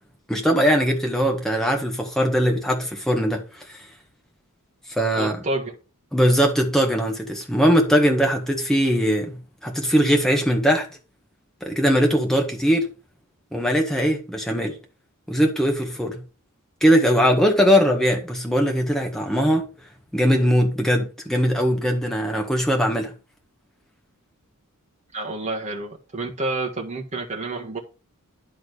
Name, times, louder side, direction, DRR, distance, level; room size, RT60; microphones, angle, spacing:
voice 1, 0.3-3.8 4.9-5.4 6.1-10.9 11.6-12.9 13.5-14.8 15.3-16.2 16.8-19.7 20.1-23.1, equal, ahead, 1.7 m, -20 dB
voice 2, 5.1-5.8 25.1-27.8, right 2 dB, 30° right, 1.6 m, -29 dB
10.5 x 3.8 x 6.4 m
head